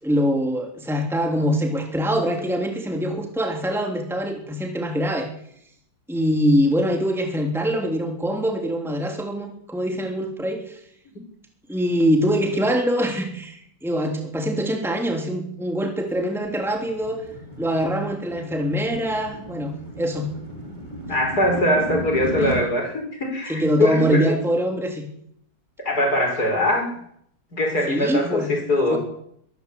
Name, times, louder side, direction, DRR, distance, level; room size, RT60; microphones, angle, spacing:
voice 1, 0.0-5.3 6.1-10.8 11.7-17.2 17.6-20.3 22.4-22.5 23.5-25.0 27.9-28.5 28.9-29.0, equal, ahead, 2 dB, 3.3 m, -24 dB
sound 1, 16.2-22.6, equal, 20° right, 5.9 m, -34 dB
voice 2, 21.1-24.4 25.8-26.9 27.5-29.0, left 1 dB, 55° left, 3 dB, 6.2 m, -22 dB
24.5 x 14.0 x 8.5 m, 0.69 s
omnidirectional pair, 2.0 m